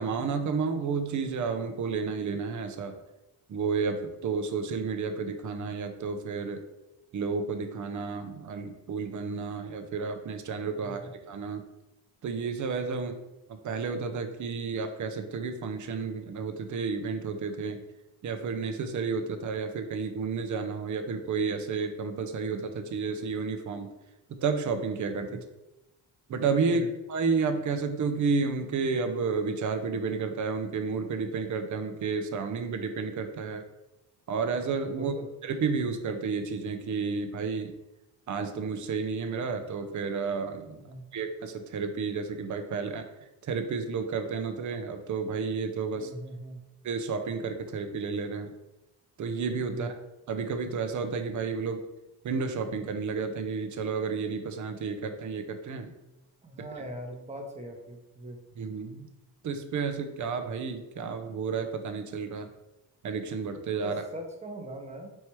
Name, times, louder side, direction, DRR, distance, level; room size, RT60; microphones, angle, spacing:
voice 1, 0.0-2.9 3.5-6.6 7.1-11.6 12.2-13.1 13.6-17.8 18.2-23.9 24.3-25.4 26.3-33.6 34.3-35.1 35.4-37.7 38.3-40.8 41.1-43.0 43.4-46.1 46.8-48.5 49.2-49.9 50.3-51.8 52.2-55.9 58.6-59.1 59.4-62.5 63.0-64.0, right 5 dB, 45° right, 7 dB, 0.7 m, -31 dB
voice 2, 10.7-11.1 12.9-13.1 25.3-25.4 26.7-26.9 34.9-35.3 40.8-41.1 45.9-46.6 49.7-49.9 56.4-58.4 63.8-65.1, right 1 dB, 15° right, 2 dB, 0.9 m, -41 dB
4.4 x 3.2 x 3.1 m, 0.96 s
supercardioid pair, 65°, 43 cm